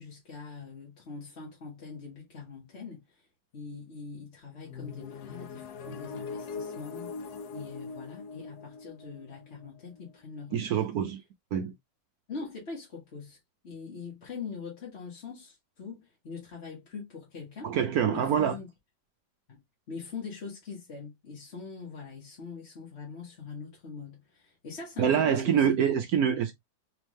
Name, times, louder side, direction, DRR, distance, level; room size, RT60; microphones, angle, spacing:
voice 1, 0.0-3.3 3.5-10.9 12.3-13.4 13.6-17.7 18.1-18.7 19.5-25.8, left 5 dB, 40° left, 1.4 m, -43 dB
sound 1, 4.6-10.4, left 4 dB, 70° left, 1.0 m, -41 dB
voice 2, 10.5-11.2 11.5-11.7 17.6-18.6 25.0-26.5, right 8 dB, 70° right, 0.9 m, -25 dB
3.6 x 3.5 x 3.0 m
omnidirectional pair, 2.0 m